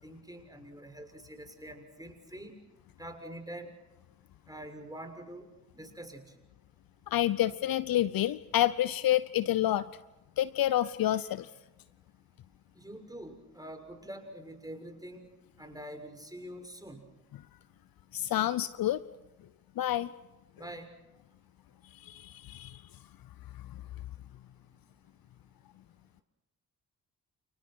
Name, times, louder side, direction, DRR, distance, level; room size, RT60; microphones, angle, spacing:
voice 1, 0.0-2.5 3.0-3.7 4.5-5.5 5.7-6.3 12.7-15.2 15.6-17.1 20.6-20.9 24.1-24.2, right 1 dB, 10° right, 4 dB, 6.6 m, -45 dB
voice 2, 7.1-9.9 10.4-11.5 18.1-19.0 19.8-20.1 22.1-22.8, left 13 dB, 60° left, 17 dB, 0.8 m, -28 dB
29.5 x 28.0 x 4.6 m, 1.0 s
hypercardioid pair, 40°, 41 cm